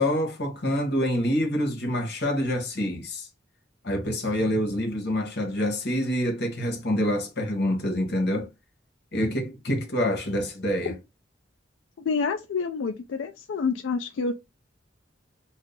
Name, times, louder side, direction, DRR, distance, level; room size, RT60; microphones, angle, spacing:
voice 1, 0.0-3.3 3.8-8.5 9.1-11.0, equal, 60° left, 1.2 m, -26 dB
voice 2, 12.1-14.3, left 5 dB, 85° left, 0.4 m, -28 dB
2.7 x 2.4 x 3.7 m
head